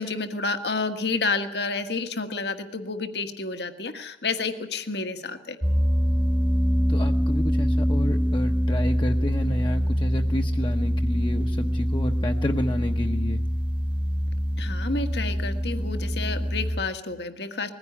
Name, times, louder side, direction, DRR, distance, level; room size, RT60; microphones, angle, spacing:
voice 1, 0.0-5.6 14.6-17.7, left 3 dB, 65° left, 8 dB, 1.6 m, -30 dB
sound 1, 5.6-16.8, equal, 5° right, 1.2 m, -24 dB
voice 2, 6.9-13.4, left 1 dB, 25° left, 3 dB, 1.0 m, -30 dB
21.0 x 15.5 x 9.9 m, 0.86 s
head